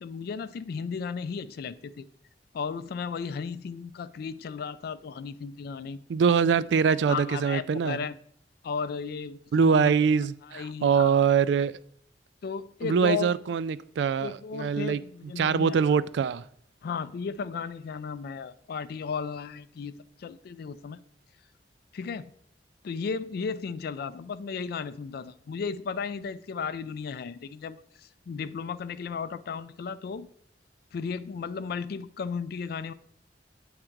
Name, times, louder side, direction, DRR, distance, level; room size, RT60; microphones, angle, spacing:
voice 1, 0.0-2.1 2.5-6.0 7.1-8.2 8.6-9.9 10.4-11.2 12.4-13.3 14.2-16.0 16.8-21.0 21.9-22.3 22.8-30.3 30.9-32.9, left 5 dB, 60° left, 0.3 m, -35 dB
voice 2, 6.1-8.0 9.5-11.8 12.8-15.0 15.4-16.4, right 6 dB, 75° right, 0.3 m, -24 dB
8.8 x 3.7 x 4.5 m
head